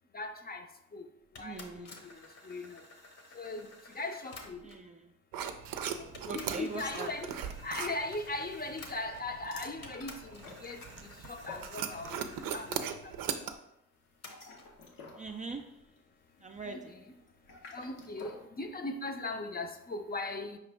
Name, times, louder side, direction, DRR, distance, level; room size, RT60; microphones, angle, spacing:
voice 1, 0.1-0.6 0.9-1.0 1.4-2.2 2.4-2.8 3.3-3.7 3.9-4.7 6.0-7.3 7.6-12.8 13.0-13.1 16.6-17.0 17.7-20.6, left 2 dB, 25° left, 5 dB, 0.6 m, -39 dB
sound 1, 1.3-4.9 5.7-5.8 6.1-9.4 9.8-12.8 14.2-14.7, left 2 dB, 50° left, 1.0 m, -52 dB
voice 2, 1.4-2.0 4.6-5.1 6.3-7.1 15.2-15.8 16.4-16.9, right 3 dB, 25° right, 3 dB, 0.4 m, -42 dB
sound 2, 5.3-13.5, right 8 dB, 75° right, 0.5 m, -40 dB
sound 3, 9.4-12.3 12.6-12.9 14.1-18.5, left 3 dB, 75° left, 1.0 m, -52 dB
4.8 x 3.0 x 3.4 m, 0.82 s
supercardioid pair, 50°, 34 cm